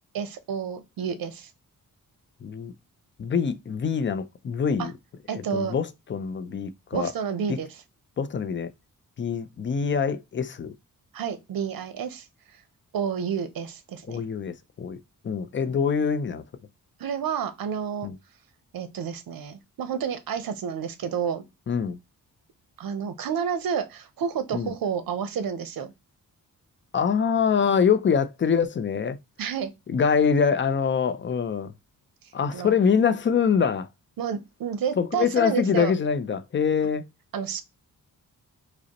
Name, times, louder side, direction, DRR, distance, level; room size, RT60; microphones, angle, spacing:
voice 1, 0.1-1.5 4.8-4.9 5.3-5.8 6.9-7.7 11.1-12.3 12.9-14.2 17.0-18.1 18.7-21.4 22.8-25.9 29.4-29.7 32.5-32.7 34.2-35.9 37.3-37.6, right 7 dB, 85° right, 0.7 m, -30 dB
voice 2, 2.4-2.7 3.2-4.9 5.3-7.1 7.5-7.6 8.2-8.7 9.2-10.7 14.1-16.4 18.0-18.1 21.7-22.0 24.5-24.7 26.9-29.2 29.9-31.7 32.3-33.9 35.0-37.1, left 6 dB, 35° left, 0.4 m, -24 dB
4.9 x 2.0 x 2.9 m
wide cardioid pair, 120°, 34 cm